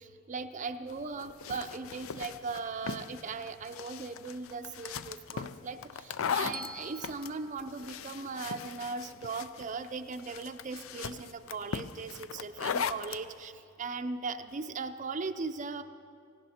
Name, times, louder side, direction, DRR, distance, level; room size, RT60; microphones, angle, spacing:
voice 1, 0.0-15.8, right 4 dB, 35° right, 8 dB, 0.4 m, -38 dB
sound 1, 0.9-13.2, left 6 dB, 85° left, 0.5 m, -38 dB
Bell, 6.5-8.7, right 2 dB, 85° right, 0.6 m, -48 dB
17.5 x 17.5 x 4.3 m, 2.4 s
head